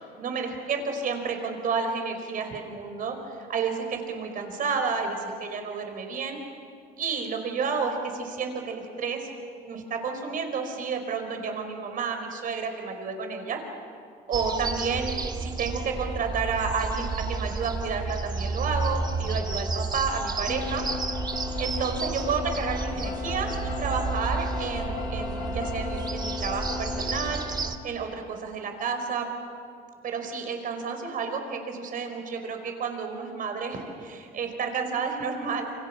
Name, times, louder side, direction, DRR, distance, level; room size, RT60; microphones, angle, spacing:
voice 1, 0.2-6.4 7.0-9.3 9.6-13.6 14.3-20.8 21.6-29.3 30.0-35.7, right 5 dB, 55° right, 5 dB, 5.0 m, -31 dB
sound 1, 14.3-27.8, right 4 dB, 25° right, 1.9 m, -31 dB
sound 2, 20.5-27.3, left 6 dB, 55° left, 4.7 m, -36 dB
28.5 x 26.0 x 7.2 m, 2.4 s
cardioid pair, 110°, 17 cm